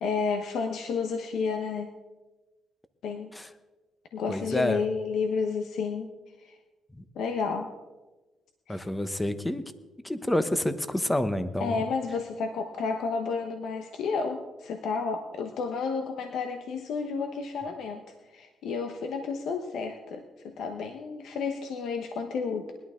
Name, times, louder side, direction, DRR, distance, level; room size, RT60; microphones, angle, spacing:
voice 1, 0.0-1.9 3.0-3.3 4.1-6.1 6.4-6.6 7.1-7.7 8.7-8.9 11.6-22.7, left 5 dB, 75° left, 5 dB, 1.1 m, -31 dB
voice 2, 4.3-4.8 6.9-7.0 8.7-9.6 10.0-11.8, left 1 dB, 10° left, 11 dB, 1.0 m, -28 dB
20.0 x 11.5 x 3.8 m, 1.2 s
cardioid pair, 90°, 0 cm